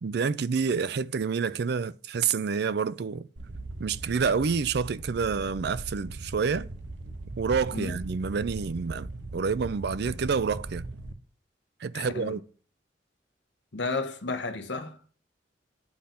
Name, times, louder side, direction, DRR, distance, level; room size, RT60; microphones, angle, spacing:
voice 1, 0.0-3.3 3.8-6.7 7.4-10.8 11.8-12.4, right 5 dB, 60° right, 0.4 m, -28 dB
sound 1, 3.4-11.1, right 2 dB, 75° right, 0.9 m, -39 dB
voice 2, 11.9-12.4 13.7-15.0, left 3 dB, 80° left, 1.1 m, -33 dB
8.6 x 3.9 x 5.7 m
head